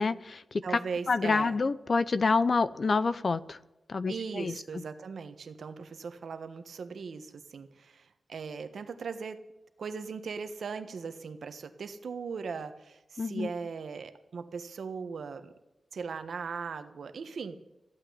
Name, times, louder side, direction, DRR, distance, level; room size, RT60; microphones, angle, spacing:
voice 1, 0.0-0.8 1.1-3.6 3.9-4.5 13.2-13.5, left 4 dB, 50° left, 15 dB, 0.6 m, -27 dB
voice 2, 0.6-1.6 4.1-9.4 9.8-15.5 15.9-17.6, right 5 dB, 80° right, 9 dB, 1.3 m, -38 dB
15.0 x 9.0 x 9.5 m, 0.99 s
wide cardioid pair, 110°, 0 cm